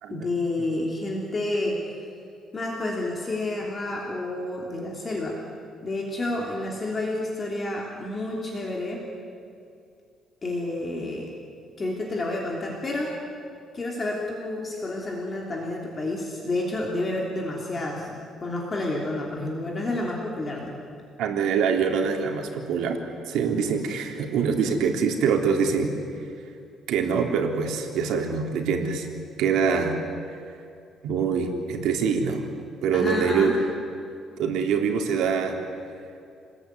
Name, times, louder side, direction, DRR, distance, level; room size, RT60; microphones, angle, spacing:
voice 1, 0.1-2.1 2.5-5.4 5.8-9.0 10.4-11.3 11.8-13.2 13.7-20.8 32.9-33.6, left 2 dB, 20° left, -2 dB, 3.2 m, -30 dB
voice 2, 21.2-25.9 26.9-29.1 29.4-30.0 31.0-32.4 32.8-33.6 34.4-35.6, right 6 dB, 80° right, 2 dB, 3.4 m, -24 dB
29.0 x 21.0 x 9.6 m, 2.5 s
cardioid pair, 180°, 0 cm